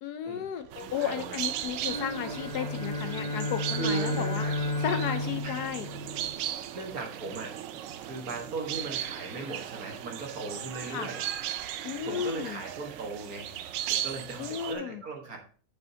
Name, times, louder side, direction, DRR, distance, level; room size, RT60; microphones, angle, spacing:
voice 1, 0.0-4.5 4.8-5.9 10.9-11.1 11.8-12.6 14.4-15.0, left 9 dB, 70° left, 10 dB, 1.1 m, -34 dB
sound 1, 0.6-14.4, right 9 dB, 75° right, 0.7 m, -48 dB
sound 2, 0.7-14.7, right 11 dB, 90° right, 1.3 m, -37 dB
voice 2, 0.8-1.4 3.7-4.5 5.4-5.5 6.7-7.5 8.0-11.2 12.1-13.5 13.9-15.4, right 4 dB, 55° right, 2 dB, 1.9 m, -37 dB
sound 3, 1.8-6.5, left 2 dB, 25° left, 0.8 m, -33 dB
9.1 x 6.3 x 2.8 m, 0.41 s
omnidirectional pair, 1.9 m